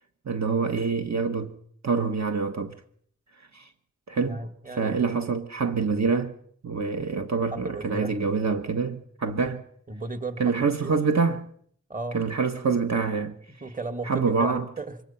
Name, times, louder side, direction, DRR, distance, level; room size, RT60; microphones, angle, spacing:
voice 1, 0.2-1.5 1.8-2.7 3.5-3.7 4.1-4.4 4.8-6.3 6.6-9.6 10.4-11.5 12.1-13.4 14.0-14.6, right 5 dB, 65° right, 1.2 m, -26 dB
voice 2, 4.3-5.0 7.5-8.2 9.9-10.6 11.9-12.2 13.6-15.0, right 3 dB, 25° right, 2.0 m, -35 dB
24.0 x 20.5 x 5.7 m
wide cardioid pair, 90°, 30 cm